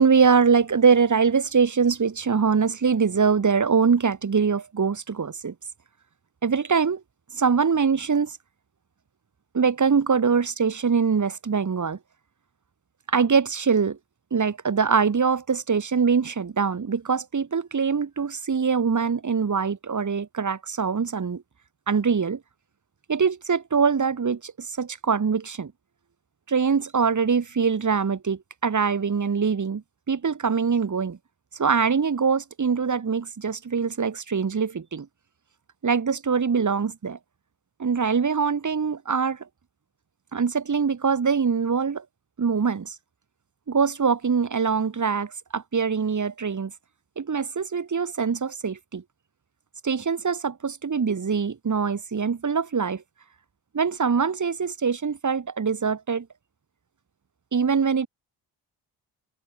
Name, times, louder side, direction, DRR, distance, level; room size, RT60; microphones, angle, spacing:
voice 1, 0.0-5.5 6.4-7.0 7.3-8.4 9.5-12.0 13.1-14.0 14.3-21.4 21.9-22.4 23.1-25.7 26.5-31.2 31.6-35.1 35.8-37.2 37.8-39.4 40.3-42.0 42.4-42.9 43.7-46.7 47.2-49.0 49.8-53.0 53.7-56.3 57.5-58.1, right 5 dB, 40° right, 4.3 m, -23 dB
supercardioid pair, 65°, 46 cm